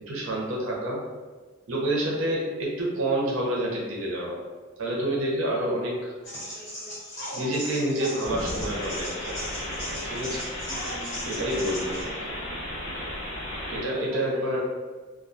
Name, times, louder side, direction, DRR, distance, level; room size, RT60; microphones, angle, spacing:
voice 1, 0.1-1.0 1.7-4.4 4.8-6.1 6.4-6.6 7.3-9.4 10.0-10.4 11.2-11.9 13.7-14.6, right 1 dB, 70° right, -3 dB, 0.6 m, -28 dB
sound 1, 6.2-12.0, left 1 dB, 55° left, 1.2 m, -38 dB
sound 2, 8.2-13.8, left 1 dB, 75° left, 0.8 m, -34 dB
voice 2, 10.7-12.6 13.6-14.6, equal, 5° right, -9 dB, 0.6 m, -45 dB
2.2 x 2.2 x 2.6 m, 1.4 s
head